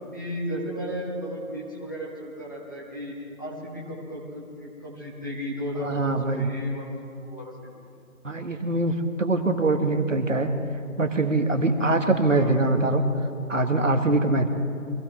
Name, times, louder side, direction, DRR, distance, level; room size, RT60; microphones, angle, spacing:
voice 1, 0.1-6.9 7.2-7.7 12.2-12.5, equal, 15° left, -7 dB, 1.7 m, -34 dB
voice 2, 5.8-6.5 8.2-10.5 11.0-13.0 13.5-14.5, right 2 dB, 60° right, 5 dB, 1.8 m, -23 dB
25.5 x 16.5 x 3.4 m, 2.5 s
figure-of-eight pair, 175°, 43 cm